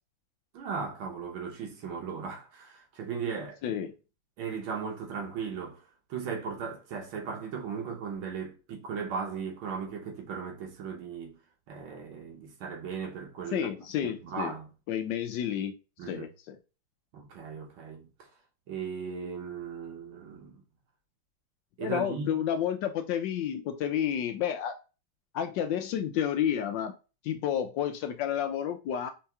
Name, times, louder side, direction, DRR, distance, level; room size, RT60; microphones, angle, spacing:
voice 1, 0.5-3.9 4.4-5.8 6.1-11.4 11.7-13.7 14.0-14.7 16.0-16.3 17.1-18.1 18.7-20.6 21.8-22.3, right 6 dB, 80° right, 1.9 m, -37 dB
voice 2, 13.5-14.5 14.9-15.7 16.1-16.6 21.8-24.8 25.3-26.9 27.2-29.1, left 9 dB, 75° left, 1.1 m, -30 dB
4.5 x 2.9 x 3.3 m
omnidirectional pair, 2.2 m